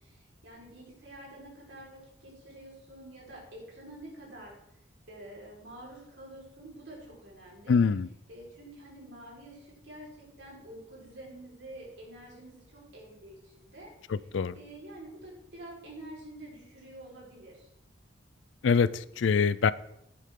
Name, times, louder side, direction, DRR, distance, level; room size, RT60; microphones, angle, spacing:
voice 1, 0.0-4.5 5.1-7.8 8.3-14.3 14.5-17.7, right 1 dB, 65° right, -4 dB, 4.5 m, -48 dB
voice 2, 7.7-8.1 14.1-14.5 18.6-19.7, left 5 dB, 70° left, 18 dB, 0.4 m, -24 dB
10.5 x 9.4 x 3.7 m, 0.78 s
head